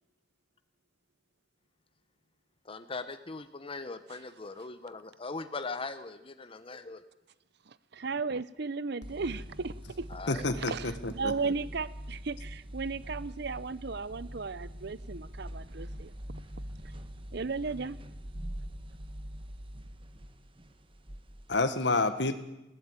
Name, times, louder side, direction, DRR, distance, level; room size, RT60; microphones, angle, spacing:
voice 1, 2.7-7.0 10.1-10.5, left 3 dB, 30° left, 10 dB, 1.1 m, -40 dB
voice 2, 7.9-10.1 10.6-16.1 17.3-18.0, right 4 dB, 65° right, 17 dB, 0.7 m, -35 dB
sound 1, 9.0-21.6, equal, 30° right, 1.5 m, -44 dB
voice 3, 10.3-11.5 21.5-22.4, left 3 dB, 70° left, 9 dB, 1.6 m, -29 dB
21.0 x 16.0 x 9.0 m, 0.93 s
head